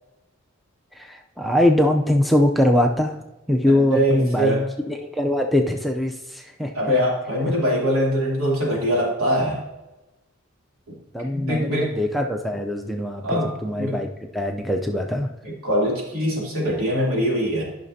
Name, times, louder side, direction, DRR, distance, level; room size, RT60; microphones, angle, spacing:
voice 1, 1.0-3.2 3.5-4.6 4.9-7.0 11.1-14.1 14.3-15.3, left 1 dB, ahead, 2 dB, 0.5 m, -22 dB
voice 2, 3.7-4.6 6.7-9.6 10.9-11.0 11.3-11.9 13.2-14.0 15.4-17.6, equal, 85° right, -4 dB, 2.9 m, -23 dB
12.5 x 5.8 x 2.7 m, 1.0 s
head